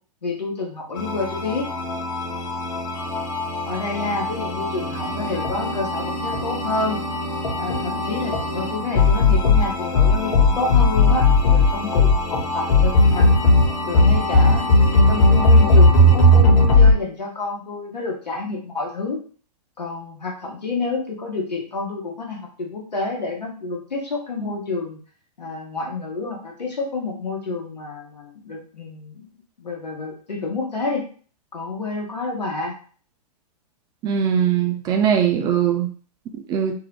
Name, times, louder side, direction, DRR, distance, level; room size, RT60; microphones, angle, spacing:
voice 1, 0.2-1.7 3.7-7.0 7.5-13.4 13.9-14.7 14.9-19.2 19.8-25.0 25.4-31.1 31.5-32.7, left 3 dB, 90° left, -1 dB, 1.1 m, -29 dB
sound 1, 1.0-16.9, left 2 dB, 55° left, 1.1 m, -18 dB
voice 2, 34.0-35.9 36.5-36.7, right 8 dB, 20° right, 3 dB, 0.3 m, -20 dB
2.6 x 2.0 x 3.1 m, 0.42 s
hypercardioid pair, 115°, 21 cm